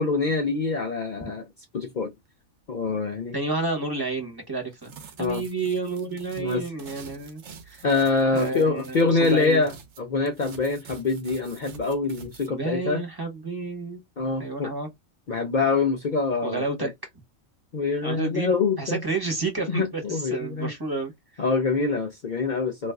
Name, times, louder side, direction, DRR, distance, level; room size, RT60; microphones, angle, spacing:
voice 1, 0.0-1.5 1.7-2.1 2.7-3.4 5.2-5.4 6.4-6.6 7.8-13.0 14.2-14.7 15.3-16.9 17.7-19.0 19.7-20.7 21.4-22.9, left 4 dB, 65° left, 0.4 m, -25 dB
voice 2, 3.3-7.8 8.3-9.6 12.5-14.0 14.4-14.9 16.4-16.9 18.0-18.5 18.8-21.1, right 3 dB, 20° right, 0.9 m, -30 dB
sound 1, 4.7-10.0 10.3-12.5, right 5 dB, 60° right, 0.9 m, -47 dB
2.5 x 2.5 x 3.4 m
omnidirectional pair, 1.5 m